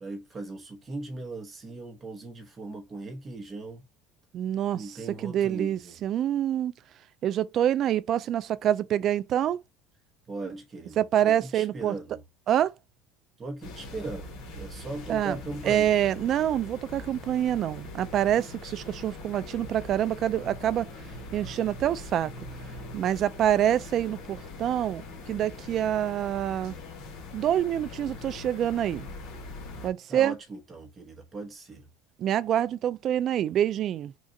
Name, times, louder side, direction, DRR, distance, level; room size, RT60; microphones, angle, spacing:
voice 1, 0.0-3.8 4.7-6.0 10.3-12.2 13.4-16.1 30.1-31.9, right 2 dB, 20° right, 1.0 m, -39 dB
voice 2, 4.3-6.7 7.2-9.6 11.0-11.9 12.5-12.7 15.1-15.4 15.7-20.9 21.3-22.3 22.9-26.7 27.3-29.0 29.8-30.3 32.2-34.1, right 11 dB, 45° right, 0.3 m, -26 dB
sound 1, 13.6-29.9, left 2 dB, 50° left, 1.4 m, -42 dB
3.7 x 2.5 x 3.9 m
supercardioid pair, 125°, 0 cm